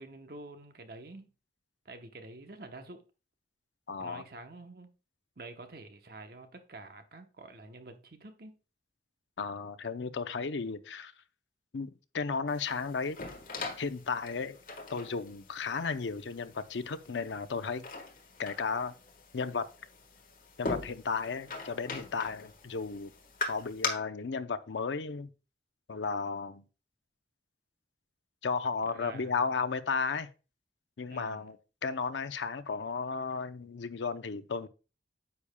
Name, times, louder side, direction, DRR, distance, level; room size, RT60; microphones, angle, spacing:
voice 1, 0.0-1.3 1.8-3.0 4.0-4.9 5.4-8.5 28.8-29.4 31.1-31.4, right 2 dB, 55° right, 0.9 m, -48 dB
voice 2, 3.9-4.2 9.4-11.1 11.7-13.2 13.8-14.6 14.9-17.9 18.4-18.9 19.3-19.7 20.6-23.1 23.5-25.3 25.9-26.6 28.4-30.3 31.0-31.6 31.8-34.7, left 5 dB, 85° left, 0.6 m, -34 dB
sound 1, 12.5-23.9, left 3 dB, 50° left, 1.4 m, -42 dB
9.6 x 7.0 x 2.2 m
head